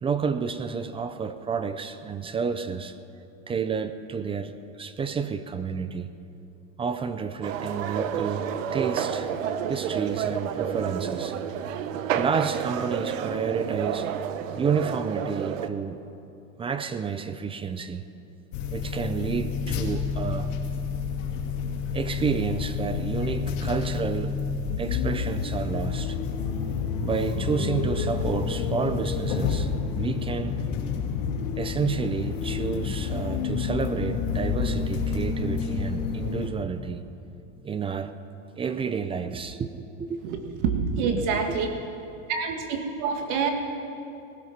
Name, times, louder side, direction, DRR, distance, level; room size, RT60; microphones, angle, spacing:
voice 1, 0.0-3.0 3.5-6.1 6.8-9.3 9.7-11.4 12.1-14.1 14.6-16.0 16.6-18.1 18.7-20.5 21.9-24.4 24.8-26.2 27.0-30.6 31.6-37.1 37.6-38.1 38.6-40.2, right 6 dB, 15° right, 11 dB, 0.4 m, -30 dB
sound 1, 7.4-15.7, right 8 dB, 85° right, 1.0 m, -30 dB
sound 2, 18.5-36.5, left 6 dB, 75° left, 2.6 m, -29 dB
voice 2, 40.2-41.7 42.3-43.5, right 5 dB, 55° right, 4 dB, 1.8 m, -27 dB
19.0 x 12.5 x 6.0 m, 2.7 s
supercardioid pair, 135°, 38 cm